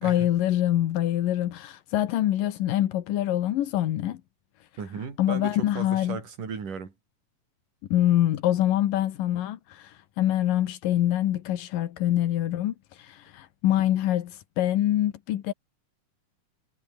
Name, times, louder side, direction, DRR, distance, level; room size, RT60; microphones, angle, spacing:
voice 1, 0.0-4.2 5.2-6.2 7.9-15.5, left 13 dB, 85° left, 3.0 m, -25 dB
voice 2, 4.8-6.9, right 6 dB, 75° right, 5.9 m, -36 dB
omnidirectional pair, 3.8 m